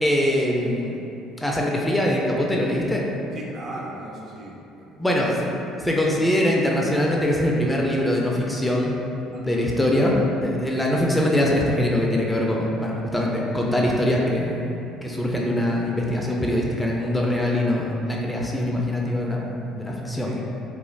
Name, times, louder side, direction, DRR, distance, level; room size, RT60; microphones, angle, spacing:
voice 1, 0.0-1.0 1.4-3.1 5.0-5.3 5.8-8.9 9.4-20.4, left 1 dB, 10° left, -2 dB, 0.4 m, -23 dB
voice 2, 3.3-5.5 9.3-9.6 17.2-17.5 20.2-20.4, right 1 dB, 50° right, -3 dB, 0.5 m, -39 dB
2.4 x 2.0 x 3.1 m, 2.8 s
hypercardioid pair, 70°, 0 cm